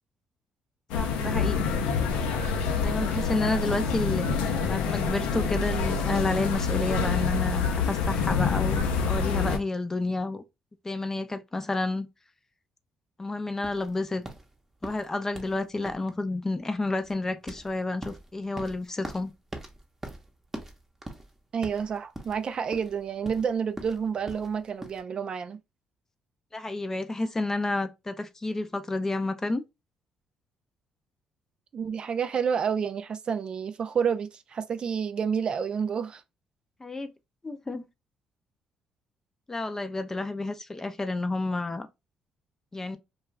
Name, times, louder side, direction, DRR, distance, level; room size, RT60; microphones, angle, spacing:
sound 1, 0.9-9.6, left 5 dB, 85° left, 0.5 m, -27 dB
voice 1, 0.9-1.7 2.8-10.4 10.8-12.1 13.2-14.2 14.8-19.3 26.5-29.6 36.8-37.1 37.4-37.8 39.5-41.9 42.7-43.0, left 2 dB, 25° left, 0.4 m, -30 dB
sound 2, 13.6-25.0, right 1 dB, 15° right, 0.7 m, -43 dB
voice 2, 21.5-25.6 31.7-36.2, right 7 dB, 50° right, 0.3 m, -29 dB
2.4 x 2.3 x 3.0 m
supercardioid pair, 65°, 2 cm